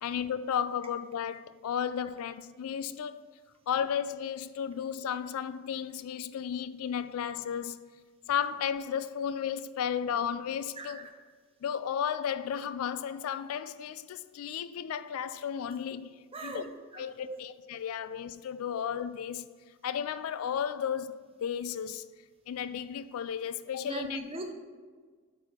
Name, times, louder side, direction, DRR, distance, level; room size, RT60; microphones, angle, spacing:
voice 1, 0.0-3.2 3.7-7.9 8.3-11.0 11.6-16.1 16.4-16.7 17.0-19.5 19.8-22.0 22.5-24.2, left 8 dB, 80° left, 0.3 m, -34 dB
voice 2, 10.8-11.1 16.3-16.7 16.9-17.4 23.8-24.5, right 2 dB, 25° right, 0.7 m, -39 dB
8.3 x 4.7 x 4.3 m
head